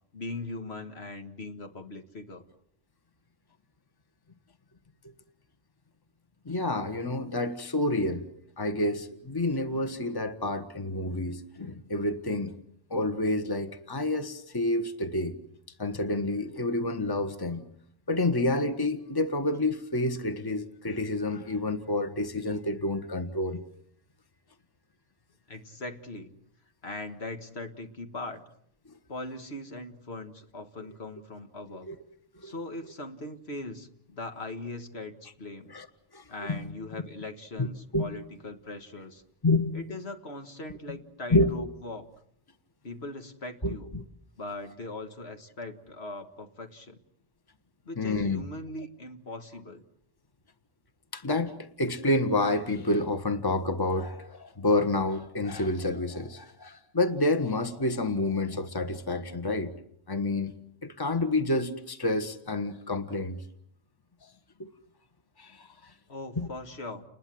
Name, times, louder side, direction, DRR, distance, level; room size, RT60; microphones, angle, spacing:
voice 1, 0.1-2.4 25.5-26.3 26.8-28.4 29.1-31.9 32.4-35.8 36.3-39.2 39.7-42.1 42.8-43.9 44.4-47.0 47.9-49.8 66.1-67.0, left 2 dB, 65° left, 2.1 m, -40 dB
voice 2, 6.4-8.3 8.6-12.6 12.9-15.4 15.8-17.6 18.1-23.6 31.9-32.0 32.4-32.5 35.7-35.9 36.1-36.7 37.6-37.7 37.9-38.1 39.4-39.9 40.9-41.0 41.3-41.5 43.6-44.0 48.0-48.4 51.1-59.7 60.1-60.5 60.8-63.4 64.6-64.7 65.4-65.9 66.4-66.5, left 2 dB, 20° left, 1.4 m, -29 dB
30.0 x 20.5 x 7.8 m
omnidirectional pair, 1.2 m